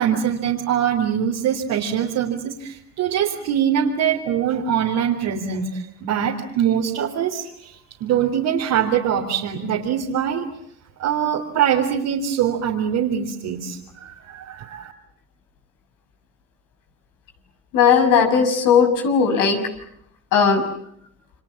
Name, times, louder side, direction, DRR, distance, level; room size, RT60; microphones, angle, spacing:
voice 1, 0.0-7.7 8.0-10.5 11.0-14.9, right 9 dB, 75° right, -2 dB, 3.8 m, -23 dB
voice 2, 17.7-19.6 20.3-20.6, left 6 dB, 75° left, 5 dB, 6.4 m, -17 dB
29.5 x 26.0 x 7.4 m, 0.70 s
supercardioid pair, 65°, 32 cm